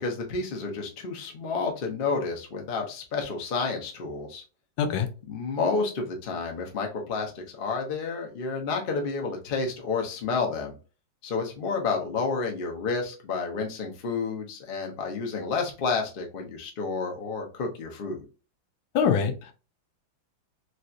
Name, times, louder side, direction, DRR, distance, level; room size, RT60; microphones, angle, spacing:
voice 1, 0.0-4.4 5.3-10.7 11.2-18.3, left 4 dB, 55° left, 1 dB, 0.6 m, -30 dB
voice 2, 18.9-19.5, left 7 dB, 85° left, 7 dB, 1.4 m, -24 dB
3.3 x 2.8 x 2.4 m, 0.34 s
omnidirectional pair, 2.1 m